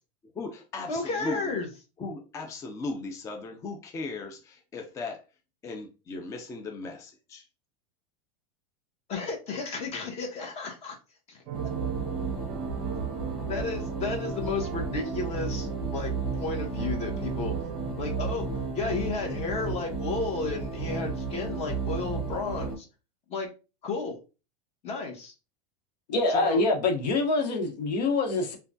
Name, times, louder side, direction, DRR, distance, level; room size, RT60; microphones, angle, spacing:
voice 1, 0.3-1.6 2.0-5.2 5.6-7.5, left 3 dB, 15° left, 0.3 m, -37 dB
voice 2, 0.9-1.7 9.1-11.0 11.3-11.4 13.5-16.1 16.4-17.5 18.0-18.5 18.7-22.9 23.3-23.5 23.8-24.2 24.8-25.3 26.3-26.6, left 4 dB, 30° left, 1.0 m, -33 dB
sound 1, 11.5-22.8, right 4 dB, 5° right, 1.3 m, -33 dB
sound 2, 11.5-17.9, right 9 dB, 55° right, 0.5 m, -42 dB
voice 3, 26.1-28.6, left 3 dB, 85° left, 0.9 m, -25 dB
3.2 x 2.2 x 2.6 m
supercardioid pair, 135°, 21 cm